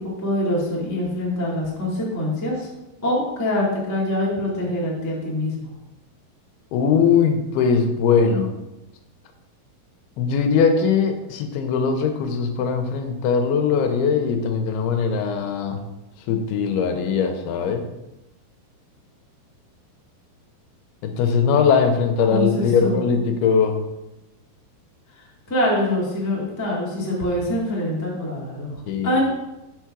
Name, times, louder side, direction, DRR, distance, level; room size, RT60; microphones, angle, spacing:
voice 1, 0.2-2.7 3.0-5.7 22.3-22.9 25.5-28.7 29.0-29.2, left 1 dB, 20° left, -6 dB, 0.5 m, -24 dB
voice 2, 6.7-8.5 10.2-15.8 16.3-17.8 21.0-23.8 28.9-29.2, left 6 dB, 90° left, 6 dB, 2.6 m, -20 dB
6.3 x 4.6 x 6.1 m, 0.97 s
omnidirectional pair, 4.5 m